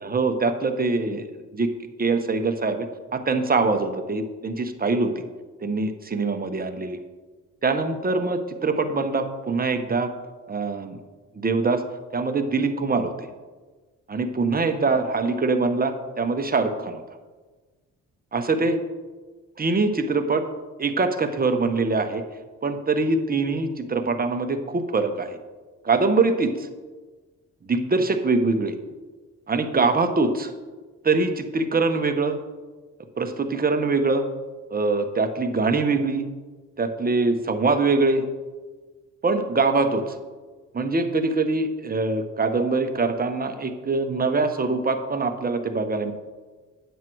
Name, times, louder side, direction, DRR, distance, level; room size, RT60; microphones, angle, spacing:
voice 1, 0.0-1.7 2.0-2.9 3.1-5.2 5.6-7.0 7.6-10.1 10.5-11.0 11.3-11.8 12.1-13.3 14.1-17.0 18.3-18.8 19.6-20.4 20.8-22.2 22.6-25.4 25.8-26.7 27.7-28.7 29.5-30.5 31.0-32.4 33.2-34.2 34.7-36.3 36.8-38.3 39.2-40.2 40.7-46.1, right 3 dB, 30° right, 7 dB, 1.1 m, -23 dB
9.3 x 7.5 x 4.7 m, 1.3 s
supercardioid pair, 60°, 32 cm